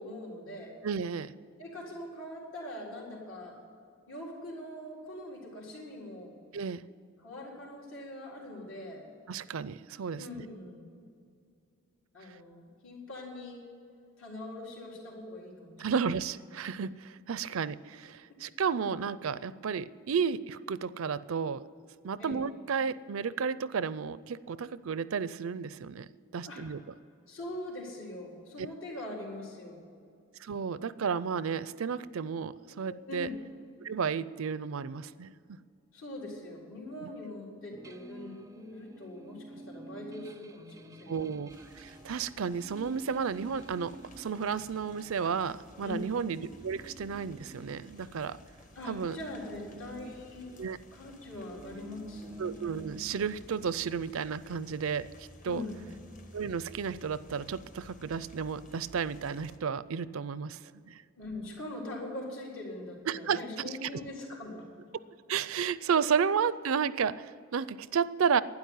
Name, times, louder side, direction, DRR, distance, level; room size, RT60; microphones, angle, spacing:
voice 1, 0.0-0.7 1.6-3.6 4.1-6.3 7.2-9.0 10.2-11.0 12.1-13.6 14.2-15.9 22.2-22.4 26.4-26.7 27.3-29.9 32.9-33.4 35.9-41.3 45.8-46.1 48.7-50.6 50.9-52.4 55.4-55.9 61.2-64.7, left 1 dB, 70° left, -2 dB, 3.9 m, -42 dB
voice 2, 0.8-1.3 6.5-6.8 9.3-10.4 15.8-21.6 22.0-26.1 26.3-26.8 30.4-33.3 33.8-35.3 37.0-37.1 41.1-41.5 41.8-48.4 48.9-49.2 50.6-50.8 52.4-55.1 55.4-55.6 56.3-60.6 60.9-61.0 63.1-63.4 63.8-63.9 65.3-68.4, right 6 dB, 75° right, 17 dB, 0.5 m, -32 dB
sound 1, 37.7-48.3 48.6-53.7, right 2 dB, 15° right, 0.4 m, -50 dB
sound 2, 41.5-59.6, left 1 dB, 35° left, 1.2 m, -55 dB
12.0 x 9.6 x 9.5 m, 2.4 s
head